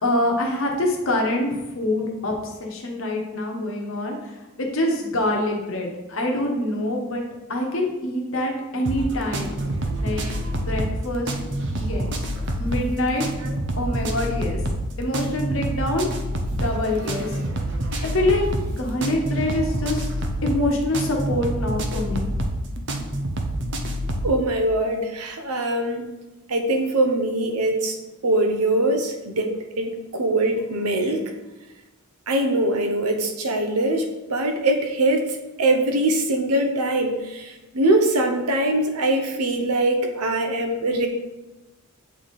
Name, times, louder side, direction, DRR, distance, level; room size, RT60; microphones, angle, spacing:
voice 1, 0.0-2.3 2.6-4.2 4.6-7.2 7.5-9.5 10.0-10.2 10.5-11.4 11.7-12.3 12.6-13.2 13.8-14.6 15.0-16.1 16.5-17.3 18.0-20.1 20.4-22.3, left 1 dB, 60° left, 0 dB, 1.1 m, -25 dB
sound 1, 8.9-24.3, right 1 dB, 55° right, 0.7 m, -27 dB
voice 2, 24.2-26.1 26.5-28.0 28.2-31.2 32.3-41.1, right 1 dB, 90° right, 4 dB, 0.9 m, -22 dB
7.8 x 3.2 x 4.2 m, 1.1 s
head